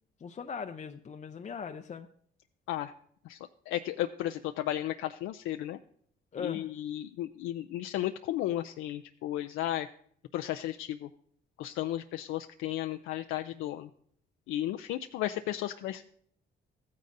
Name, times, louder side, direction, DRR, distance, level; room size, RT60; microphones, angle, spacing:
voice 1, 0.2-2.1 6.3-6.7, left 6 dB, 35° left, 6 dB, 0.5 m, -39 dB
voice 2, 3.2-5.8 6.4-9.9 10.3-11.1 11.6-13.9 14.5-16.0, left 13 dB, 90° left, 7 dB, 0.4 m, -34 dB
14.5 x 9.3 x 2.6 m, 0.63 s
cardioid pair, 90°, 20 cm